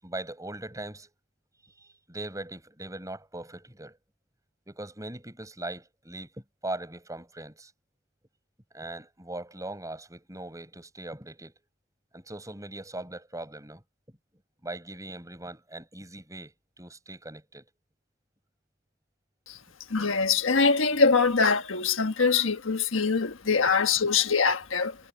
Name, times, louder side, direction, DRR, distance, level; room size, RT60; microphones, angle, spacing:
voice 1, 0.0-1.1 1.8-4.0 4.7-7.7 8.7-11.5 12.1-13.8 14.6-17.7, right 2 dB, 15° right, 8.0 m, -40 dB
voice 2, 19.9-24.9, left 5 dB, 90° left, 1.4 m, -23 dB
head